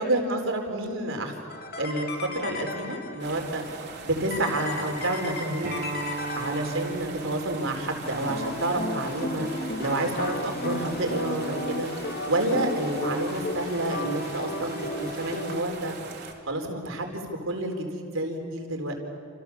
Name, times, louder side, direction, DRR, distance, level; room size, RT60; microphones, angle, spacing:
voice 1, 0.0-1.3 1.8-3.6 4.0-5.8 6.4-9.5 9.8-11.9 12.3-15.9 16.5-18.9, right 1 dB, 80° right, 3 dB, 4.4 m, -29 dB
sound 1, 1.5-3.4 4.3-7.1 8.0-15.6, left 2 dB, 50° left, 2.5 m, -34 dB
sound 2, 3.2-16.3, right 4 dB, 60° right, 3.4 m, -42 dB
Acoustic guitar, 5.6-10.8, right 3 dB, 45° right, 1.8 m, -39 dB
29.5 x 27.5 x 7.3 m, 2.4 s
head